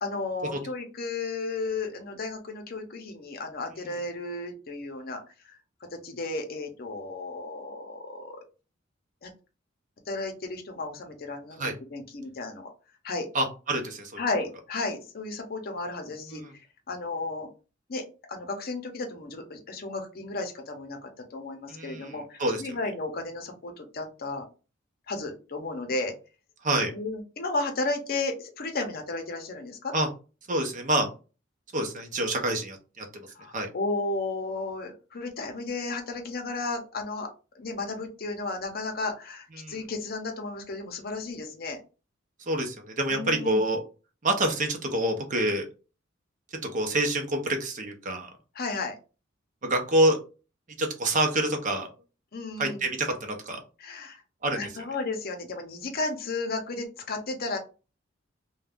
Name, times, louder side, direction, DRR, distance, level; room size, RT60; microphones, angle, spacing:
voice 1, 0.0-5.5 5.9-8.4 9.2-9.3 10.1-12.7 13.0-13.3 14.2-16.4 16.9-17.5 17.9-24.5 25.1-26.1 26.9-29.9 33.3-37.3 37.5-41.8 43.1-43.6 48.6-49.0 52.3-52.9 53.8-54.2 54.6-57.6, left 3 dB, 50° left, 4 dB, 0.7 m, -33 dB
voice 2, 13.3-14.2 16.3-16.5 21.7-22.6 26.6-26.9 29.9-30.1 30.5-31.1 31.7-33.7 39.6-39.8 42.4-43.8 44.2-45.7 46.5-48.3 49.6-50.2 50.8-51.9 52.6-53.6 54.4-54.7, right 1 dB, 40° right, 4 dB, 0.7 m, -27 dB
2.5 x 2.2 x 3.4 m, 0.33 s
head